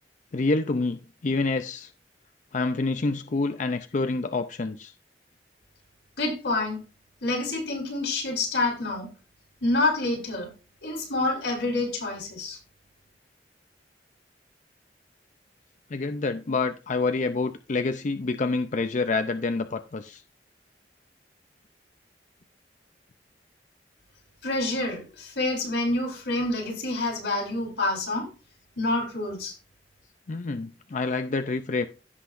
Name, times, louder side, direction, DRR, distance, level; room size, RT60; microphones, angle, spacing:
voice 1, 0.3-1.9 2.5-4.9 15.9-20.2 30.3-31.9, left 3 dB, 45° left, 0.5 m, -27 dB
voice 2, 6.2-6.8 7.2-9.1 9.6-10.5 10.8-12.6 24.4-28.3 28.8-29.5, left 2 dB, 90° left, 4.0 m, -27 dB
16.0 x 5.6 x 2.5 m
head